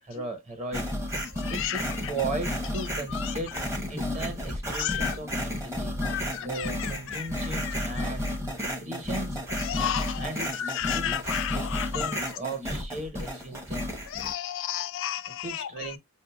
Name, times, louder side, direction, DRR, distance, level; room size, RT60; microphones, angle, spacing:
voice 1, 0.0-0.8 1.5-6.0 6.4-8.4 8.8-9.4 10.2-13.9 15.3-16.0, right 2 dB, 35° right, 1.2 m, -37 dB
sound 1, 0.7-14.3, left 1 dB, 15° right, 0.8 m, -32 dB
voice 2, 1.4-1.8 4.8-5.1 6.0-7.3 7.6-8.1 9.6-10.2 10.6-12.2 14.1-15.7, left 11 dB, 60° left, 0.3 m, -32 dB
5.6 x 2.6 x 2.3 m
head